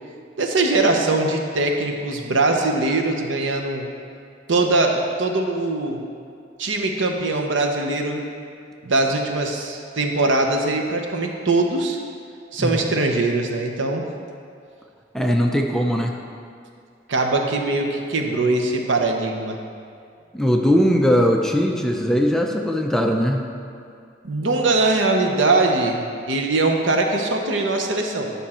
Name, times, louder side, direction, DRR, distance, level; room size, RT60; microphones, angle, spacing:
voice 1, 0.4-3.9 4.5-6.0 6.6-8.2 8.8-12.0 12.5-14.0 17.1-19.6 24.2-28.3, right 2 dB, 85° right, 3 dB, 0.8 m, -21 dB
voice 2, 15.1-16.1 20.3-23.5, equal, 5° left, 1 dB, 0.5 m, -20 dB
9.7 x 5.4 x 4.3 m, 2.3 s
head